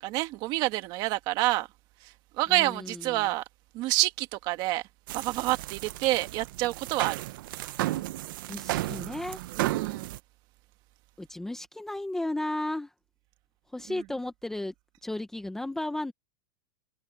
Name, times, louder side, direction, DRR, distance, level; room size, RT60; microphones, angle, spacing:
voice 1, 0.0-1.7 2.0-3.4 3.7-4.8 5.1-7.2 9.6-10.1 13.9-14.0, right 18 dB, 35° right, 1.6 m, -28 dB
voice 2, 2.5-3.3 8.5-9.4 11.2-12.9 13.7-14.7 15.0-16.1, left 1 dB, 5° left, 0.9 m, -34 dB
sound 1, 5.1-10.2, right 16 dB, 55° right, 0.9 m, -33 dB
supercardioid pair, 165°, 13 cm